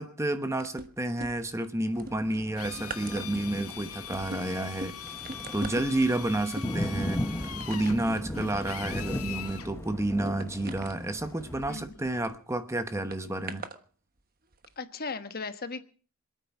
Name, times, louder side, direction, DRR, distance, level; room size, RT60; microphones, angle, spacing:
voice 1, 0.0-5.1 5.5-7.2 7.7-13.6, right 1 dB, 15° right, 9 dB, 1.0 m, -30 dB
sound 1, 0.6-1.7 2.0-12.4 13.1-13.8 14.5-14.7, right 2 dB, 45° right, 1.3 m, -43 dB
Thunder, 1.9-11.6, left 1 dB, 10° left, 0.9 m, -38 dB
Drill, 2.5-9.7, left 9 dB, 90° left, 1.8 m, -42 dB
voice 2, 14.8-15.8, left 4 dB, 45° left, 10 dB, 1.2 m, -36 dB
26.0 x 9.2 x 6.0 m, 0.41 s
head